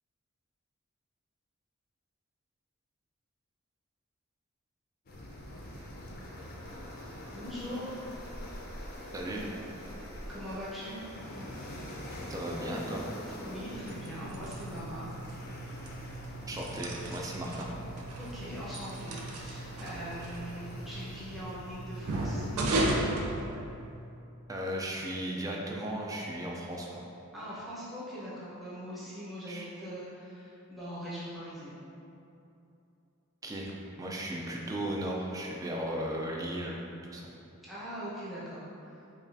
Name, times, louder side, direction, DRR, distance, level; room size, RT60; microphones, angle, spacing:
sound 1, 5.1-22.6, left 1 dB, 45° left, 0.5 m, -45 dB
voice 1, 7.3-7.8 10.0-11.0 13.4-15.0 18.2-22.9 27.3-31.8 37.6-39.1, equal, ahead, -10 dB, 0.8 m, -42 dB
voice 2, 9.1-9.4 12.3-13.0 16.5-17.7 24.5-27.0 29.5-29.7 33.4-33.7 34.0-36.8 37.1-37.3, right 1 dB, 15° right, -2 dB, 0.3 m, -36 dB
sound 2, 13.6-24.1, right 1 dB, 80° right, 0.4 m, -36 dB
5.2 x 2.3 x 2.6 m, 2.7 s
head